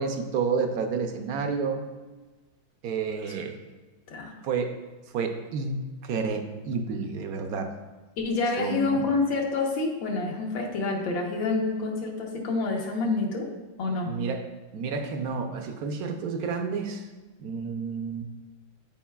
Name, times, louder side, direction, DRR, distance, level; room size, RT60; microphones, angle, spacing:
voice 1, 0.0-1.9 2.8-3.6 4.4-4.8 5.1-7.8 8.6-9.0 14.0-14.5 14.7-17.1 17.4-18.2, right 5 dB, 70° right, 5 dB, 0.9 m, -30 dB
voice 2, 8.2-13.5 13.8-14.1, left 3 dB, 80° left, 0 dB, 1.8 m, -27 dB
13.0 x 4.6 x 2.3 m, 1.2 s
omnidirectional pair, 2.1 m